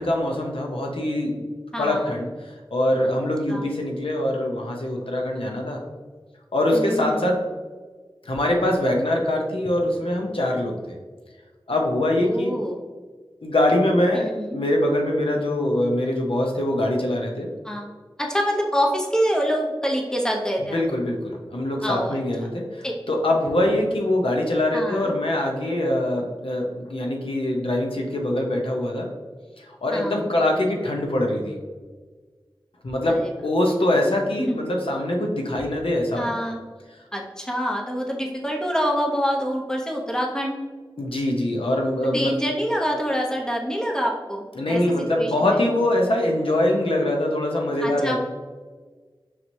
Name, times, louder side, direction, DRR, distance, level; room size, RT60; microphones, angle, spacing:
voice 1, 0.0-1.4 1.8-2.3 2.7-5.8 6.5-7.4 8.3-10.7 11.7-12.5 13.4-14.2 14.5-17.5 20.7-29.1 29.6-31.6 32.8-36.4 41.0-42.3 44.6-48.2, left 1 dB, 85° left, 1 dB, 0.7 m, -23 dB
voice 2, 1.7-2.1 3.5-3.7 6.7-7.3 12.2-12.8 14.1-14.6 17.6-20.8 21.8-22.5 22.8-22.9 24.7-25.1 29.9-30.3 33.0-33.3 34.4-34.6 36.2-36.6 37.1-40.6 42.0-45.6 47.8-48.2, equal, 5° left, -1 dB, 0.8 m, -26 dB
5.7 x 2.9 x 2.6 m, 1.4 s
wide cardioid pair, 50°, 9 cm